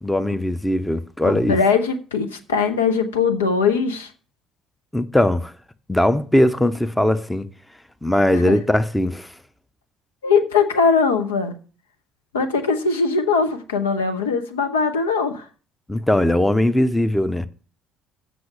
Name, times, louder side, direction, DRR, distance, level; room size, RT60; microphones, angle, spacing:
voice 1, 0.0-1.6 4.9-5.5 5.9-7.5 8.0-9.3 15.9-17.5, left 1 dB, 5° left, 0.7 m, -19 dB
voice 2, 1.2-4.1 8.3-8.5 10.2-11.6 12.3-15.5, left 5 dB, 75° left, 0.7 m, -20 dB
7.8 x 6.1 x 6.9 m
figure-of-eight pair, 50°, 0 cm